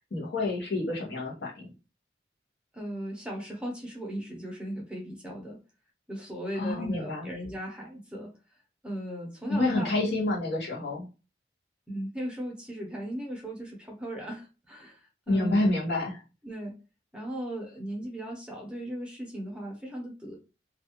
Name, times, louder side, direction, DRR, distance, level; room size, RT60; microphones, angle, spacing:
voice 1, 0.1-1.7 6.6-7.3 9.5-11.0 15.3-16.2, left 2 dB, 75° left, -1 dB, 0.9 m, -28 dB
voice 2, 2.7-5.6 6.1-8.3 8.8-10.1 11.9-15.6 16.4-16.8 17.1-20.4, equal, 5° right, -1 dB, 0.7 m, -37 dB
2.4 x 2.3 x 2.8 m, 0.30 s
head